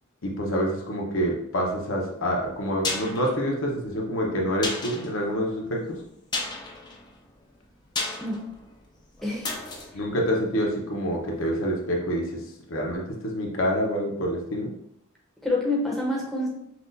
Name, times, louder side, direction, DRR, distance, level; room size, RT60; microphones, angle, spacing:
voice 1, 0.2-6.0 9.9-12.4 12.7-14.7, equal, 70° left, -1 dB, 0.8 m, -27 dB
sound 1, 2.5-11.3 11.6-11.7, left 3 dB, 20° left, 0.5 m, -35 dB
voice 2, 9.2-9.5 15.4-16.5, left 2 dB, ahead, -4 dB, 0.8 m, -27 dB
5.9 x 2.4 x 2.6 m, 0.75 s
head